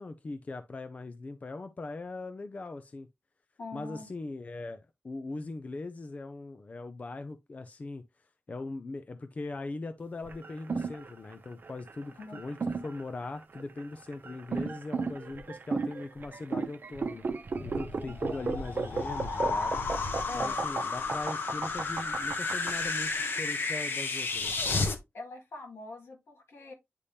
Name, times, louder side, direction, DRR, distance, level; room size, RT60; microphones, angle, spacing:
voice 1, 0.0-3.1 3.7-8.0 8.5-12.6 12.8-17.2 17.6-19.7 20.3-24.8, left 3 dB, 35° left, 0.5 m, -40 dB
voice 2, 3.6-4.1 12.2-12.4 18.0-18.5 20.3-20.6 25.1-26.7, left 3 dB, 85° left, 2.0 m, -44 dB
sound 1, 10.3-22.7, right 4 dB, 50° right, 0.8 m, -34 dB
sound 2, 17.5-25.0, left 3 dB, 60° left, 1.0 m, -32 dB
9.8 x 3.5 x 2.7 m
wide cardioid pair, 125°, 4 cm